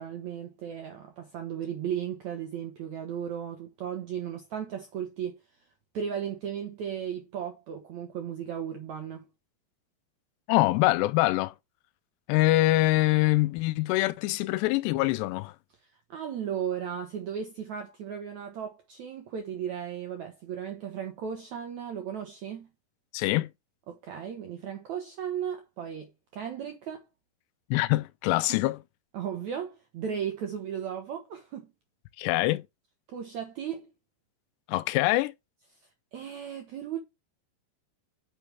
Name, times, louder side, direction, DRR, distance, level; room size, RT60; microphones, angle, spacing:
voice 1, 0.0-5.3 5.9-9.2 16.1-22.7 23.9-27.0 28.5-28.6 29.1-31.7 33.1-33.9 36.1-37.0, right 8 dB, 75° right, 1.7 m, -35 dB
voice 2, 10.5-11.5 12.3-15.5 23.1-23.5 27.7-28.8 32.2-32.6 34.7-35.3, left 19 dB, 85° left, 2.7 m, -24 dB
9.3 x 5.6 x 3.3 m
omnidirectional pair, 4.9 m